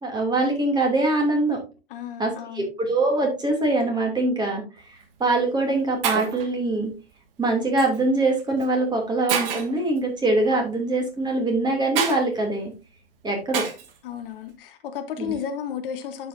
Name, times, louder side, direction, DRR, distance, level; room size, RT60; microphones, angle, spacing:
voice 1, 0.0-1.6 2.2-4.6 5.2-6.9 7.4-12.7 13.2-13.6 15.2-15.3, right 2 dB, 15° right, 2.7 m, -23 dB
voice 2, 1.9-2.7 14.0-16.3, left 8 dB, 60° left, 1.3 m, -33 dB
Shatter, 4.8-5.0 5.7-5.8 6.0-6.5 7.8-8.0 8.6-8.7 9.3-9.8 12.0-12.2 13.5-13.9, right 7 dB, 65° right, 1.6 m, -27 dB
11.0 x 5.5 x 2.7 m
hypercardioid pair, 120°, 31 cm